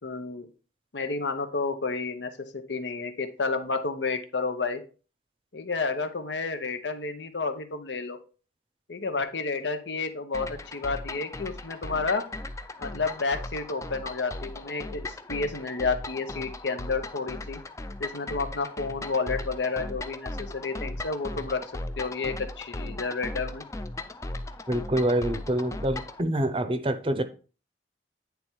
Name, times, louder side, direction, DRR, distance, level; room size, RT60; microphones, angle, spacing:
voice 1, 0.0-0.5 0.9-4.8 5.5-8.2 8.9-12.2 12.8-17.6 18.0-21.6 22.0-23.6, left 4 dB, 80° left, 0.9 m, -31 dB
sound 1, 10.3-26.2, left 2 dB, 15° left, 0.4 m, -37 dB
voice 2, 24.7-27.2, right 1 dB, 30° right, 0.6 m, -26 dB
9.3 x 3.5 x 4.5 m
head